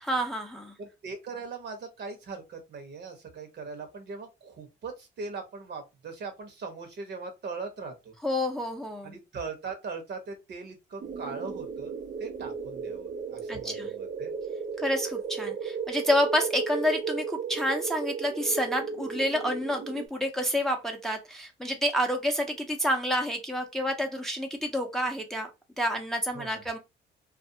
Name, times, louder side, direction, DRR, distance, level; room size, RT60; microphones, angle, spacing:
voice 1, 0.0-0.7 8.2-9.1 13.5-13.9 14.8-25.5 25.8-26.8, equal, ahead, 0.6 m, -29 dB
voice 2, 0.8-8.1 9.0-14.3 26.3-26.6, right 4 dB, 60° right, 0.9 m, -40 dB
sound 1, 11.0-20.1, right 5 dB, 40° right, 0.4 m, -35 dB
2.4 x 2.3 x 2.6 m
cardioid pair, 90°, 20 cm